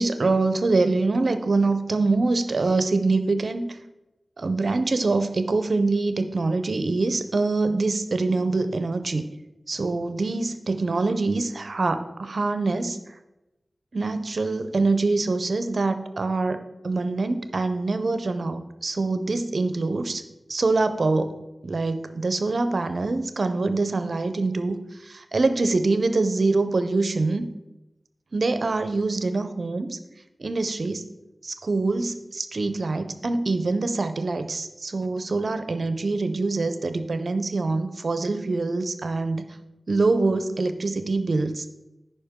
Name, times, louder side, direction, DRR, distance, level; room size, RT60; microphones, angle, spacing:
voice 1, 0.0-3.8 4.4-9.3 9.7-13.0 13.9-20.2 20.5-27.4 28.3-30.0 30.4-31.0 31.4-39.6 39.9-41.7, right 3 dB, 70° right, 10 dB, 0.6 m, -24 dB
9.8 x 5.3 x 3.6 m, 0.98 s
cardioid pair, 45°, 0 cm